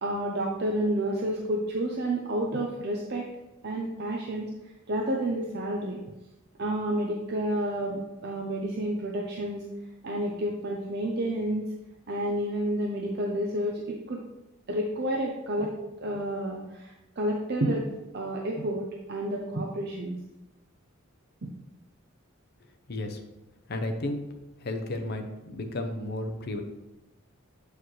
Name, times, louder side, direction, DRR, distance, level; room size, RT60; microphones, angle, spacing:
voice 1, 0.0-3.2 3.6-4.5 4.9-6.0 6.6-9.7 10.0-11.6 12.1-14.2 14.7-15.7 16.0-17.8 18.1-20.2 21.4-21.5, right 1 dB, 50° right, -1 dB, 0.6 m, -30 dB
voice 2, 22.9-23.2 23.7-24.2 24.6-26.6, left 1 dB, 50° left, 6 dB, 0.7 m, -33 dB
7.6 x 4.7 x 3.2 m, 0.99 s
head